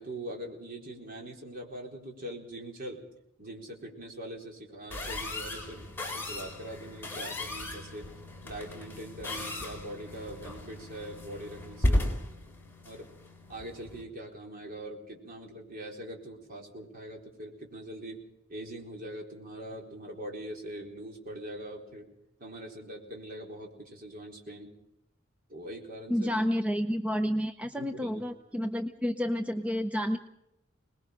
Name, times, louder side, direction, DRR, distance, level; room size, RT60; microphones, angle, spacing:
voice 1, 0.0-3.1 3.4-8.1 8.4-12.1 12.8-13.1 13.5-18.2 18.5-22.1 22.4-24.7 25.5-26.3 27.7-28.2, right 1 dB, 45° right, 0 dB, 4.3 m, -42 dB
sound 1, 4.9-14.0, left 1 dB, 10° left, 4.0 m, -35 dB
voice 2, 26.1-30.2, equal, 5° right, 7 dB, 0.7 m, -30 dB
25.0 x 20.5 x 5.1 m, 0.84 s
head